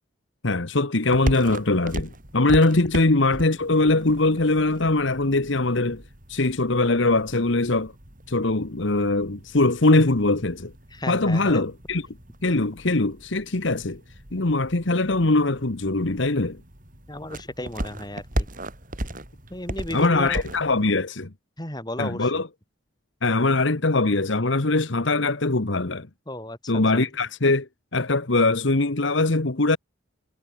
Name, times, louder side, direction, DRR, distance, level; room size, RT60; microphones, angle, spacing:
voice 1, 0.4-6.0 6.3-7.9 8.3-10.7 11.1-12.1 12.4-14.0 14.3-16.6 19.9-21.3 22.0-22.5 23.2-26.1 26.7-29.8, left 2 dB, 65° left, 1.4 m, -22 dB
sound 1, 1.0-20.8, right 1 dB, 40° right, 6.5 m, -37 dB
voice 2, 10.9-11.6 17.1-18.5 19.5-20.4 21.6-22.3 26.3-26.6, left 1 dB, 20° left, 7.9 m, -34 dB
head